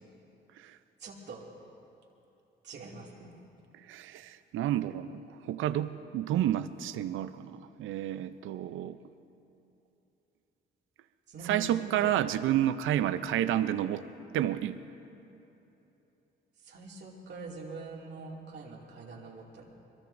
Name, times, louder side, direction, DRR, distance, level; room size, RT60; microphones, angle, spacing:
voice 1, 1.0-1.5 2.6-3.3 11.3-12.1 16.6-19.8, right 3 dB, 60° right, -1 dB, 2.4 m, -44 dB
voice 2, 3.9-9.0 11.4-14.1 14.3-14.8, right 11 dB, 80° right, 13 dB, 0.6 m, -30 dB
22.5 x 22.0 x 2.6 m, 2.9 s
cardioid pair, 90°, 20 cm